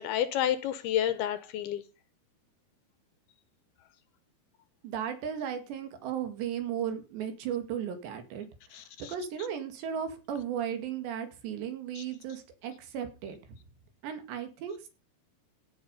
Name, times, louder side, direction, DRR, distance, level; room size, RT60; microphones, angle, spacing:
voice 1, 0.0-1.8 8.7-9.1 12.0-12.1, left 11 dB, 75° left, 13 dB, 2.5 m, -30 dB
voice 2, 4.8-8.5 9.0-13.4 14.0-14.9, right 8 dB, 75° right, 7 dB, 4.4 m, -35 dB
16.5 x 7.9 x 5.4 m, 0.32 s
omnidirectional pair, 5.1 m